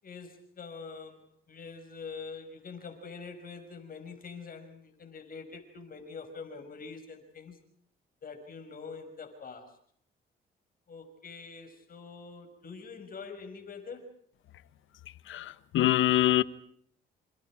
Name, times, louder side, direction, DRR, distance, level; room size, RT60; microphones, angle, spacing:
voice 1, 0.0-7.6 8.2-9.8 10.9-14.1, left 5 dB, 45° left, 5.8 m, -45 dB
voice 2, 15.3-16.4, left 14 dB, 80° left, 1.1 m, -25 dB
27.5 x 27.0 x 4.9 m
cardioid pair, 90°, 20 cm